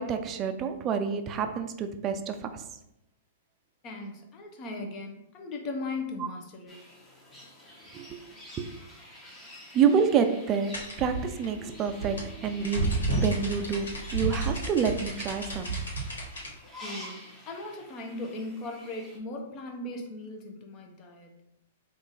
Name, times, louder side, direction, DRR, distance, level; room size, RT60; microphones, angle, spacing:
voice 1, 0.0-2.6 7.9-8.2 8.6-8.7 9.7-15.8, right 6 dB, 30° right, 8 dB, 0.4 m, -28 dB
voice 2, 3.8-6.8 16.8-21.3, left 2 dB, 35° left, 3 dB, 0.8 m, -38 dB
sound 1, 6.7-19.2, left 1 dB, 10° left, 1.0 m, -48 dB
sound 2, 10.7-16.5, right 2 dB, 80° left, 1.4 m, -31 dB
3.6 x 2.5 x 4.0 m, 0.83 s
hypercardioid pair, 120°, 0 cm